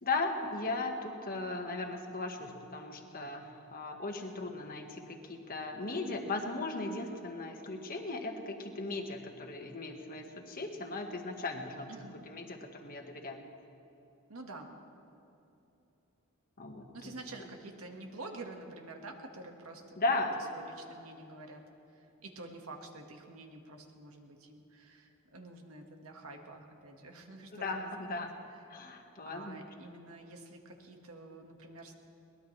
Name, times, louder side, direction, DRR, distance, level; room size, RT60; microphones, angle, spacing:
voice 1, 0.0-11.9 12.3-12.5 12.8-13.4 16.6-17.1 20.0-20.4 27.6-28.3 28.7-29.7, left 3 dB, 40° left, 3 dB, 1.5 m, -37 dB
voice 2, 11.9-12.2 14.3-14.8 16.9-21.6 21.9-28.3 29.3-31.9, right 2 dB, 75° right, 3 dB, 1.7 m, -48 dB
22.0 x 19.5 x 3.3 m, 2.9 s
head